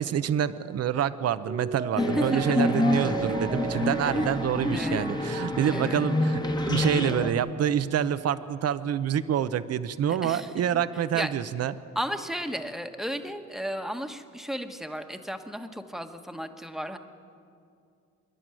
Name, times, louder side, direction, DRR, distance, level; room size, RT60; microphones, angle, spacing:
voice 1, 0.0-6.4 6.7-11.7, right 9 dB, 55° right, 13 dB, 0.8 m, -27 dB
Mallet percussion, 1.5-7.0 7.3-7.4, right 5 dB, 30° right, 1.0 m, -36 dB
sound 1, 2.0-7.3, left 2 dB, 15° left, 1.4 m, -27 dB
voice 2, 2.0-2.7 4.7-5.1 5.7-6.0 10.2-10.8 11.1-11.3 11.9-17.0, equal, ahead, 6 dB, 1.3 m, -34 dB
26.0 x 11.0 x 9.0 m, 2.4 s
cardioid pair, 90°, 30 cm